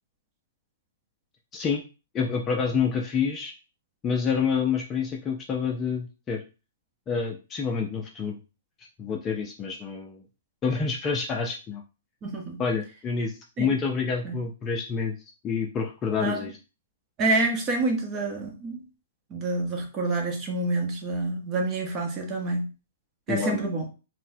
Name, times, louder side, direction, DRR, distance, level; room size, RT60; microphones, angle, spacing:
voice 1, 2.1-3.5 4.0-6.4 7.1-8.4 9.0-10.2 10.6-11.8 12.6-15.1 15.4-16.5 23.3-23.7, left 5 dB, 20° left, 1 dB, 0.4 m, -28 dB
voice 2, 12.2-12.6 13.6-13.7 14.2-14.4 16.2-16.4 17.2-18.8 19.3-22.7 23.3-23.9, right 2 dB, 25° right, 2 dB, 0.8 m, -27 dB
3.9 x 2.1 x 2.7 m, 0.32 s
hypercardioid pair, 145°, 0 cm